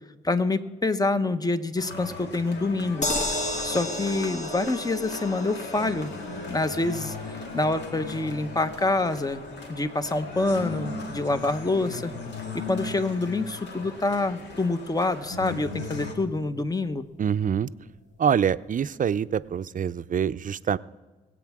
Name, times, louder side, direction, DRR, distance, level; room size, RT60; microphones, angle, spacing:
voice 1, 0.2-3.1 3.6-6.1 6.5-9.4 9.7-12.1 12.7-17.1, left 2 dB, 20° left, 11 dB, 1.1 m, -26 dB
sound 1, 1.8-16.1, left 3 dB, 75° left, 1.9 m, -38 dB
sound 2, 3.0-15.2 15.6-15.7 16.0-16.1, left 1 dB, 40° left, 2.0 m, -36 dB
voice 2, 17.2-17.7 18.2-20.8, right 8 dB, 50° right, 15 dB, 0.5 m, -25 dB
23.0 x 8.4 x 3.6 m, 1.3 s
supercardioid pair, 45°, 18 cm